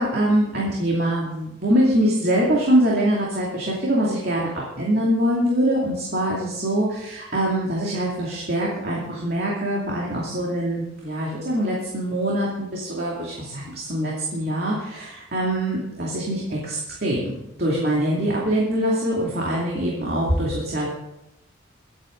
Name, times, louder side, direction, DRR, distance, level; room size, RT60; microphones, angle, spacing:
voice 1, 0.0-20.9, right 1 dB, 50° right, -4 dB, 2.6 m, -23 dB
23.5 x 8.5 x 3.9 m, 0.91 s
head